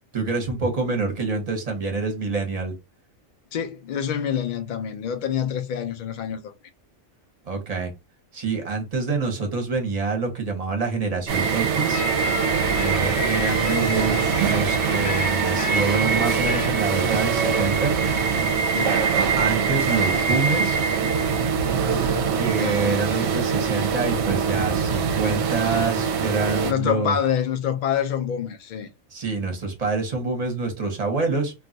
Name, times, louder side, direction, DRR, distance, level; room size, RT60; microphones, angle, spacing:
voice 1, 0.1-2.7 7.5-7.9 8.3-12.0 12.7-18.0 19.4-20.8 22.3-27.2 29.1-31.5, right 4 dB, 35° right, 0.8 m, -26 dB
voice 2, 3.5-6.5 18.8-19.0 22.6-23.3 26.6-28.9, left 8 dB, 65° left, 0.4 m, -27 dB
sound 1, 11.3-26.7, right 6 dB, 65° right, 0.8 m, -23 dB
sound 2, 11.9-17.0, left 2 dB, 80° left, 1.2 m, -32 dB
2.5 x 2.3 x 3.8 m
omnidirectional pair, 1.4 m